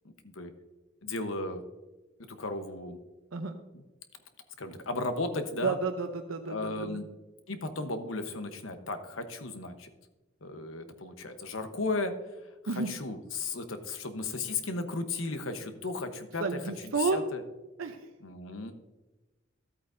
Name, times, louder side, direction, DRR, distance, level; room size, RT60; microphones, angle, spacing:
voice 1, 0.0-0.5 1.0-1.6 2.2-3.0 3.7-3.8 4.6-5.8 6.5-7.1 7.5-9.9 10.4-17.4 18.2-18.7, left 3 dB, 80° left, 8 dB, 1.0 m, -35 dB
voice 2, 5.6-7.0 12.7-12.9 16.4-17.2 17.8-18.1, right 4 dB, 90° right, 5 dB, 0.7 m, -31 dB
13.5 x 8.5 x 2.6 m, 1.1 s
head